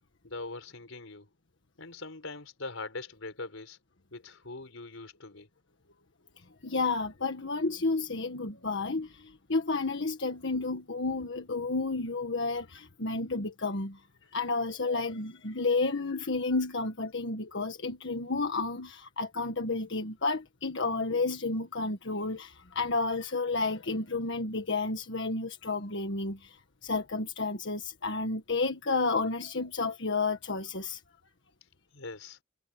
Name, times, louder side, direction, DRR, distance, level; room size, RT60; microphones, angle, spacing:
voice 1, 0.2-1.3 1.8-3.8 4.1-5.5 31.9-32.4, left 3 dB, 85° left, 4.5 m, -42 dB
voice 2, 6.6-14.0 14.3-31.0, left 3 dB, 65° left, 1.6 m, -31 dB
head